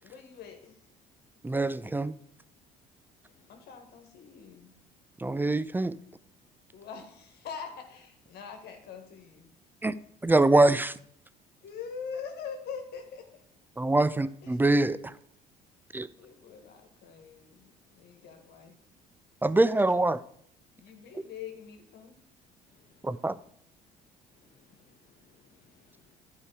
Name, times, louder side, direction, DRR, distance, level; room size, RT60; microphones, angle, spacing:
voice 1, 0.0-0.8 3.5-4.7 6.7-9.5 11.6-13.4 14.4-14.6 16.1-18.8 20.8-22.2, left 6 dB, 60° left, 1.6 m, -43 dB
voice 2, 1.4-2.1 5.2-6.0 9.8-9.9 10.2-10.9 13.8-15.0 15.9-16.1 19.4-20.2 23.0-23.3, right 2 dB, 10° right, 0.4 m, -24 dB
voice 3, 24.4-26.2, left 6 dB, 45° left, 1.0 m, -65 dB
11.0 x 5.0 x 4.7 m
hypercardioid pair, 60°, 19 cm